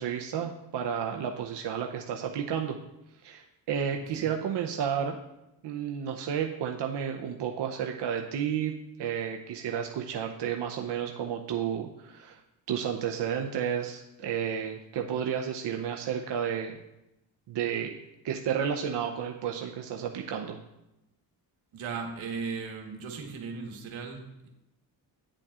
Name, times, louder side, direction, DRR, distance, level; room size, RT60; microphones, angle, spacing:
voice 1, 0.0-2.8 3.2-5.2 5.6-8.7 9.0-12.4 12.7-16.8 17.5-17.9 18.2-20.6, right 8 dB, 60° right, 2 dB, 0.8 m, -31 dB
voice 2, 21.7-24.5, right 5 dB, 80° right, 2 dB, 1.4 m, -37 dB
8.5 x 7.6 x 2.4 m, 0.92 s
supercardioid pair, 60°, 46 cm